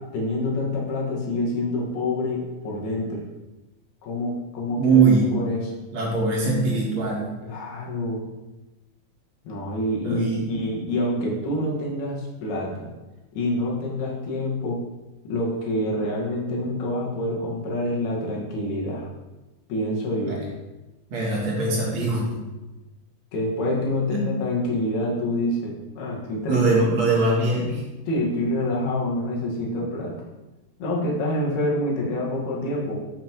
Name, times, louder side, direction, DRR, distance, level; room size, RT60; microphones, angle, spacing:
voice 1, 0.1-3.2 4.0-5.0 5.3-5.7 7.4-8.2 9.5-12.9 13.3-14.8 15.3-19.1 19.7-20.4 23.3-26.6 28.1-30.2 30.8-33.0, left 1 dB, 90° left, -3 dB, 3.9 m, -27 dB
voice 2, 4.8-5.3 5.9-7.3 10.0-10.5 20.2-20.4 21.1-22.3 24.1-24.3 26.5-27.8, right 3 dB, 50° right, -3 dB, 2.7 m, -21 dB
7.8 x 7.7 x 4.7 m, 1.1 s
omnidirectional pair, 4.4 m